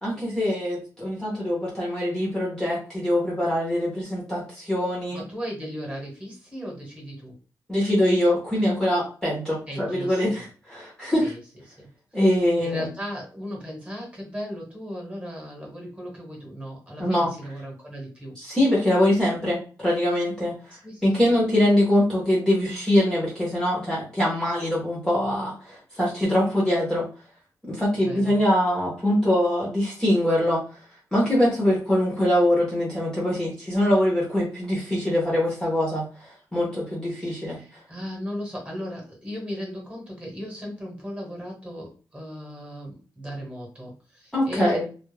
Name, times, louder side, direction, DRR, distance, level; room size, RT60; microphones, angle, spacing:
voice 1, 0.0-5.2 7.7-11.3 12.1-12.9 17.0-17.3 18.4-20.5 21.0-27.1 27.7-30.6 31.1-37.6 44.3-44.8, left 1 dB, 5° left, -5 dB, 0.7 m, -23 dB
voice 2, 5.1-7.3 9.7-10.4 11.2-11.4 11.7-11.9 12.1-12.2 12.6-18.3 20.8-21.3 28.1-28.4 37.1-44.8, equal, 15° right, -2 dB, 1.0 m, -36 dB
2.2 x 2.0 x 3.1 m, 0.36 s
wide cardioid pair, 160°, 7 cm